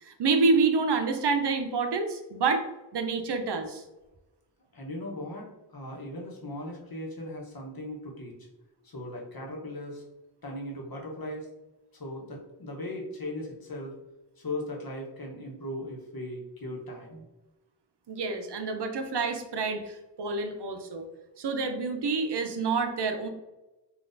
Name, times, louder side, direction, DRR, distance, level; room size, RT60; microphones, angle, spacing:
voice 1, 0.0-2.6 2.9-3.8 18.1-21.1 21.4-23.3, right 4 dB, 70° right, 6 dB, 0.6 m, -28 dB
voice 2, 4.7-8.3 8.8-10.0 10.4-11.5 11.9-13.9 14.4-17.2, left 1 dB, 55° left, -1 dB, 1.0 m, -38 dB
4.0 x 2.4 x 2.5 m, 1.0 s
cardioid pair, 40°, 42 cm